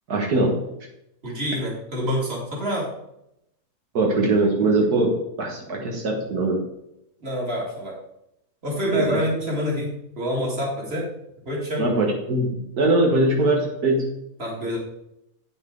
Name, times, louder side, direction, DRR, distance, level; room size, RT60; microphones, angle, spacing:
voice 1, 0.1-0.6 3.9-6.6 8.9-9.2 11.8-12.5 12.7-14.1, right 2 dB, 85° right, 0 dB, 2.0 m, -21 dB
voice 2, 1.2-2.9 7.2-8.0 8.6-11.1 11.5-11.9 14.4-14.8, equal, 40° right, -3 dB, 2.6 m, -27 dB
8.9 x 7.1 x 3.9 m, 0.81 s
omnidirectional pair, 1.6 m